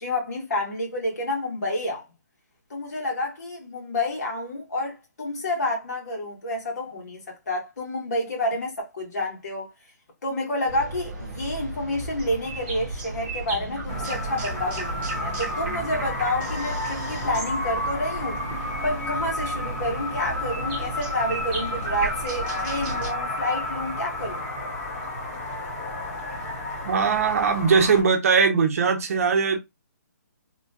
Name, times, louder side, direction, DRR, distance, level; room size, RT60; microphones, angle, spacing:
voice 1, 0.0-2.1 2.7-9.7 10.2-18.4 18.8-24.5, left 1 dB, 65° left, 1.6 m, -29 dB
sound 1, 10.7-23.1, right 2 dB, 15° right, 0.7 m, -34 dB
sound 2, 13.9-28.0, left 1 dB, 20° left, 1.0 m, -32 dB
voice 2, 26.8-29.6, right 5 dB, 55° right, 0.7 m, -20 dB
3.0 x 2.2 x 2.6 m
hypercardioid pair, 160°, 10 cm